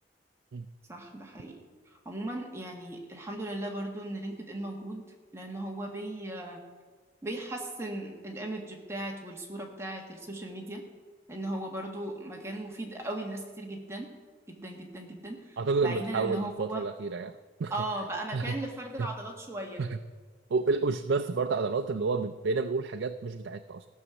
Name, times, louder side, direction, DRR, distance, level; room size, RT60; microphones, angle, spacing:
voice 1, 0.9-1.6 2.0-5.0 5.3-6.6 7.2-10.8 11.3-14.1 14.5-16.8 17.7-19.8, right 1 dB, 15° right, 0 dB, 1.5 m, -37 dB
voice 2, 15.6-17.7 18.3-18.6 19.0-19.1 19.8-20.0 20.5-23.9, right 4 dB, 85° right, 7 dB, 0.4 m, -30 dB
15.5 x 6.3 x 6.9 m, 1.5 s
head